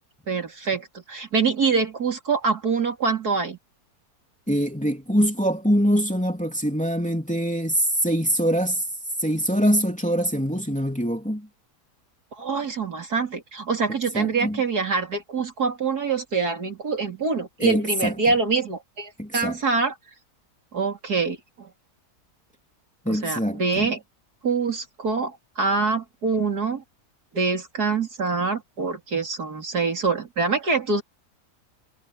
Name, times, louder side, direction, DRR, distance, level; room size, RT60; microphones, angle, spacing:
voice 1, 0.3-3.6 12.3-19.9 20.7-21.7 23.1-24.0 24.4-26.8 27.3-31.0, right 4 dB, 70° right, 3.8 m, -25 dB
voice 2, 4.5-8.8 9.2-11.5 14.1-14.6 17.6-18.1 19.2-19.6 23.0-23.9, equal, 5° left, 3.2 m, -24 dB
omnidirectional pair, 1.7 m